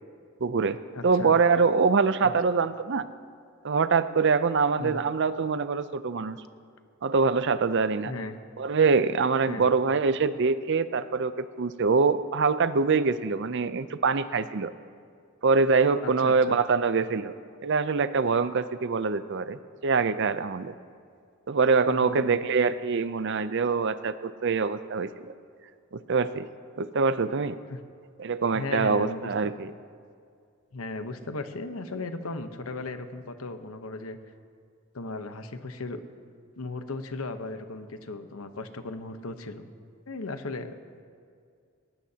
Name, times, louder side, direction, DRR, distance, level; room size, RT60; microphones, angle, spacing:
voice 1, 0.4-3.1 3.6-6.4 7.0-8.1 8.6-14.7 15.4-17.3 17.6-20.7 21.5-25.3 25.9-26.5 26.8-27.6 28.2-29.7, right 4 dB, 55° right, 13 dB, 0.5 m, -24 dB
voice 2, 0.9-1.4 2.2-2.3 4.8-5.0 8.0-8.4 9.5-9.7 16.0-16.6 21.9-22.5 27.7-27.8 28.5-29.3 30.7-34.2 34.9-36.0 36.6-39.7 40.1-40.8, left 2 dB, 85° left, 8 dB, 1.0 m, -36 dB
19.5 x 19.5 x 2.9 m, 2.3 s
head